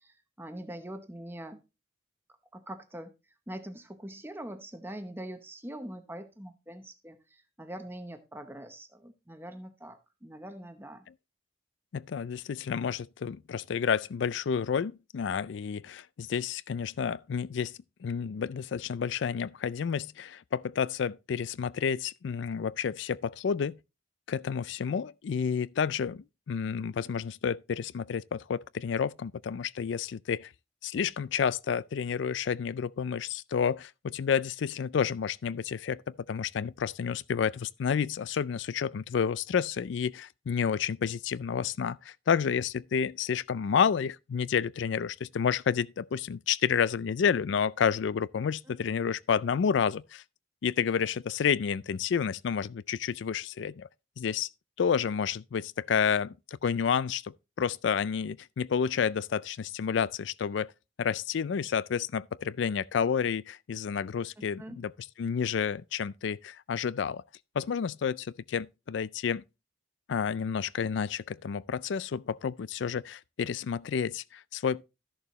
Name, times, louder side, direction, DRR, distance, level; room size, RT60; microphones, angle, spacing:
voice 1, 0.0-1.6 2.5-3.1 3.5-11.1 64.6-64.8, right 1 dB, 10° right, 0.8 m, -43 dB
voice 2, 11.9-17.7 18.0-23.8 24.3-30.5 30.8-36.0 36.3-50.2 50.6-53.9 54.2-54.5 54.8-60.7 61.0-64.9 65.2-67.2 67.6-69.4 70.1-74.8, left 7 dB, 70° left, 0.4 m, -30 dB
13.5 x 6.8 x 3.0 m
head